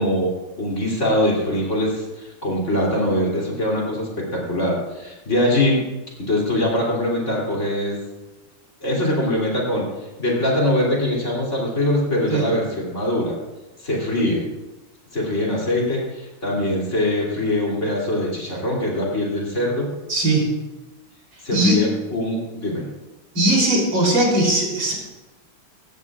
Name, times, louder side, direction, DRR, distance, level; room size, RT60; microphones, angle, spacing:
voice 1, 0.0-5.8 6.3-8.0 8.8-9.9 10.2-13.3 13.8-14.5 15.1-19.9 21.4-22.9, left 1 dB, 35° left, -3 dB, 3.5 m, -22 dB
voice 2, 20.1-20.5 21.5-21.8 23.3-24.9, right 1 dB, 75° right, -2 dB, 4.3 m, -19 dB
18.0 x 14.0 x 2.5 m, 1.1 s
omnidirectional pair, 2.1 m